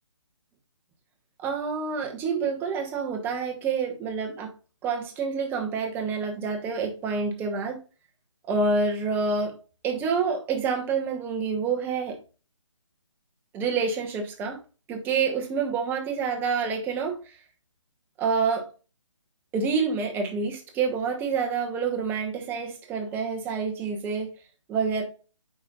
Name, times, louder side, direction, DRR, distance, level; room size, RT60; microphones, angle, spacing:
voice 1, 1.4-4.5 4.8-7.8 8.5-9.5 9.8-12.2 13.5-14.6 14.9-17.3 18.2-18.7 19.5-24.3 24.7-25.0, right 5 dB, 10° right, 2 dB, 1.1 m, -27 dB
8.1 x 5.1 x 2.4 m, 0.34 s
figure-of-eight pair, 145°, 16 cm